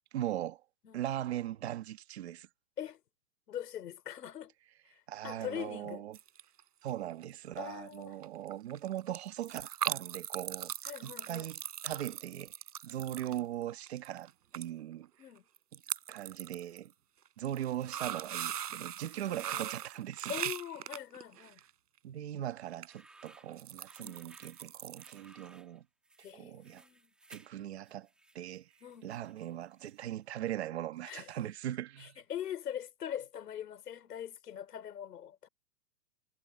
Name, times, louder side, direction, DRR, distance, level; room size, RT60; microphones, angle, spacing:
voice 1, 0.1-0.6 0.9-2.5 5.1-6.2 6.8-10.7 11.0-11.6 11.8-12.5 12.8-15.1 15.7-15.8 16.1-16.9 17.4-20.3 22.0-25.8 26.3-26.8 27.3-28.1 28.3-28.7 29.0-32.2, right 12 dB, 45° right, 1.6 m, -39 dB
voice 2, 3.5-4.5 4.9-6.0 7.6-8.2 10.8-11.5 13.0-13.5 15.2-15.5 19.3-19.7 20.3-21.6 24.0-24.3 26.2-27.1 28.8-29.1 31.0-31.3 32.0-35.5, left 10 dB, 85° left, 5.1 m, -42 dB
sound 1, 6.1-6.6 6.9-7.3 7.6-7.7 7.9-8.0 8.2-14.3 14.5-14.7 14.9-15.0 15.6-16.8 17.3-21.7 22.7-22.9 23.3-25.3 25.5-25.6, right 10 dB, 90° right, 4.0 m, -40 dB
sound 2, 22.7-30.2, right 2 dB, ahead, 1.2 m, -61 dB
hypercardioid pair, 180°, 46 cm